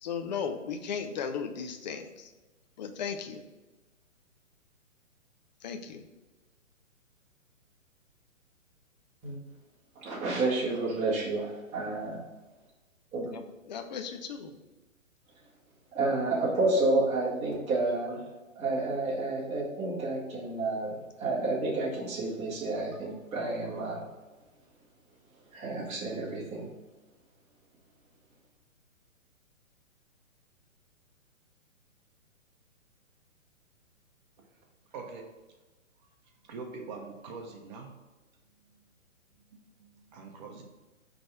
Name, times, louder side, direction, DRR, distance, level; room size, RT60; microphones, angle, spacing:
voice 1, 0.0-2.3 2.8-3.4 5.6-6.0 13.3-14.5, left 6 dB, 35° left, 7 dB, 0.5 m, -36 dB
voice 2, 10.0-12.2 13.1-13.3 15.9-18.2 18.5-24.0 25.5-26.6, right 2 dB, 15° right, -6 dB, 1.7 m, -30 dB
voice 3, 34.9-35.3 36.4-38.0 39.5-40.6, right 4 dB, 35° right, 2 dB, 1.0 m, -43 dB
5.2 x 3.5 x 5.5 m, 1.2 s
figure-of-eight pair, 130°, 40 cm